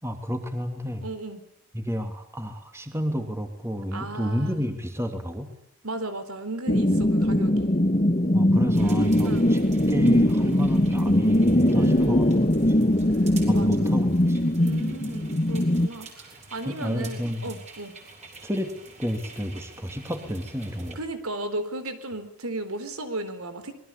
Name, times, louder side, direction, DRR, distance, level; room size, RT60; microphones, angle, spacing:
voice 1, 0.0-1.0 1.7-5.5 8.3-9.6 9.9-12.2 12.7-13.0 13.5-14.5 16.6-17.5 18.4-18.7 19.0-21.0, equal, 10° right, 6 dB, 2.9 m, -31 dB
voice 2, 1.0-1.4 3.9-4.6 5.8-7.7 8.8-9.5 11.7-12.5 13.2-14.0 14.6-17.9 21.0-23.7, right 2 dB, 80° right, 10 dB, 4.2 m, -35 dB
sound 1, 6.7-15.9, left 1 dB, 30° left, 1.4 m, -21 dB
sound 2, 8.7-20.9, right 3 dB, 30° right, 6.7 m, -47 dB
26.5 x 22.0 x 8.5 m, 0.67 s
head